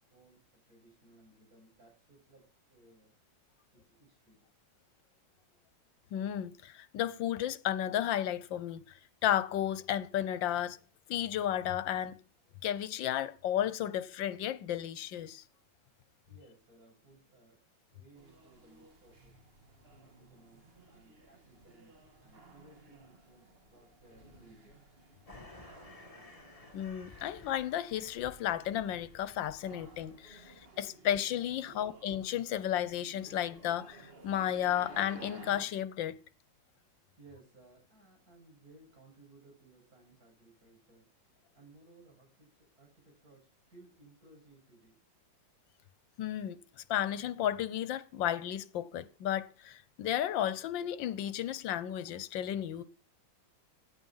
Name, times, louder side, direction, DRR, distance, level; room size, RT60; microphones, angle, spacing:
voice 1, 0.1-3.1 3.7-4.4 16.3-17.6 17.9-19.4 20.0-24.8 31.6-31.8 37.2-41.1 41.5-42.5 42.8-45.0, right 2 dB, 50° right, 7.9 m, -60 dB
voice 2, 6.1-8.8 9.2-10.8 11.1-12.1 12.6-15.4 26.7-30.4 30.8-36.2 46.2-46.6 46.9-52.8, left 11 dB, 80° left, 1.6 m, -33 dB
sound 1, 18.1-35.7, right 2 dB, 30° right, 2.1 m, -56 dB
sound 2, 25.2-30.7, left 2 dB, 20° left, 2.4 m, -55 dB
16.5 x 10.5 x 5.5 m
omnidirectional pair, 2.0 m